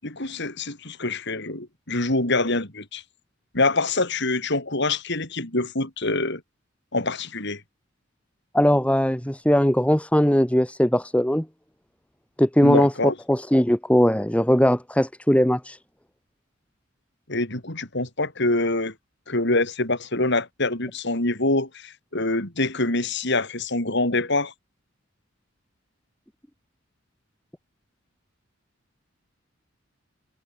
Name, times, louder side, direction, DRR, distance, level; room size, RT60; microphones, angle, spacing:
voice 1, 0.0-3.0 3.5-6.4 6.9-7.6 12.6-13.1 17.3-18.9 19.3-24.5, left 2 dB, 60° left, 6.3 m, -25 dB
voice 2, 8.5-11.5 12.4-12.9 13.3-15.8, equal, 5° left, 2.7 m, -20 dB
head